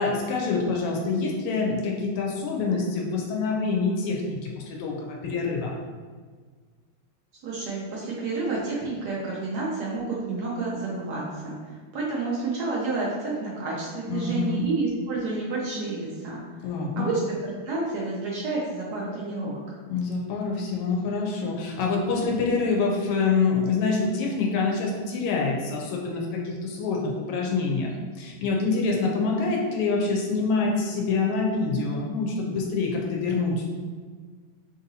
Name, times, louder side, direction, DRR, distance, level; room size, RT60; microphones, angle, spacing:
voice 1, 0.0-5.8 14.1-14.7 16.6-17.1 19.9-27.9 28.2-33.7, left 4 dB, 85° left, -1 dB, 1.5 m, -26 dB
voice 2, 7.4-16.4 17.0-19.6, right 3 dB, 90° right, -5 dB, 0.8 m, -30 dB
3.8 x 2.7 x 2.7 m, 1.5 s
omnidirectional pair, 2.4 m